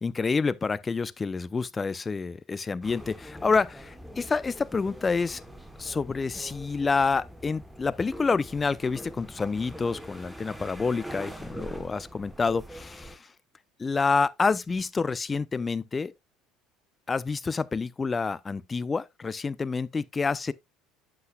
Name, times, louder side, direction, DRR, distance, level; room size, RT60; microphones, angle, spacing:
voice 1, 0.0-5.4 5.8-13.3 13.8-16.1 17.1-20.5, left 4 dB, 25° left, 0.5 m, -28 dB
sound 1, 2.8-13.2, right 1 dB, ahead, 1.2 m, -43 dB
8.3 x 7.8 x 2.3 m
supercardioid pair, 100°, 0 cm